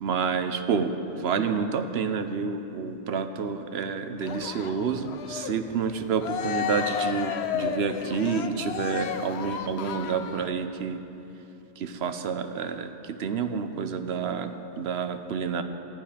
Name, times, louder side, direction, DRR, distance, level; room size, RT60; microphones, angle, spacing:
voice 1, 0.0-11.0 11.8-15.6, right 6 dB, 75° right, 8 dB, 0.9 m, -29 dB
Cheering, 4.2-10.6, left 8 dB, 80° left, 0.9 m, -33 dB
14.0 x 10.5 x 4.9 m, 2.9 s
omnidirectional pair, 1.1 m